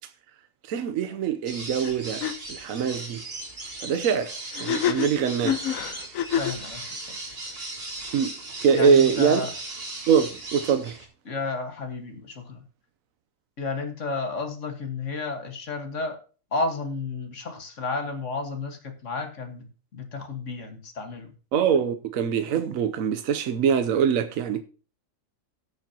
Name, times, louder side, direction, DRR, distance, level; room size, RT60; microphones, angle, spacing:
voice 1, 0.7-3.2 3.8-5.6 8.1-8.3 8.6-9.4 10.1-11.0 21.5-24.6, right 7 dB, 80° right, 1.1 m, -23 dB
sound 1, 1.5-11.1, right 2 dB, 45° right, 2.2 m, -37 dB
sound 2, 1.8-1.9 2.2-2.3 4.5-6.6, left 9 dB, 80° left, 1.2 m, -27 dB
voice 2, 6.4-7.2 8.7-9.5 11.3-12.6 13.6-16.2 16.5-19.7 19.9-21.3, left 3 dB, 65° left, 1.9 m, -32 dB
17.5 x 6.7 x 2.8 m
omnidirectional pair, 1.4 m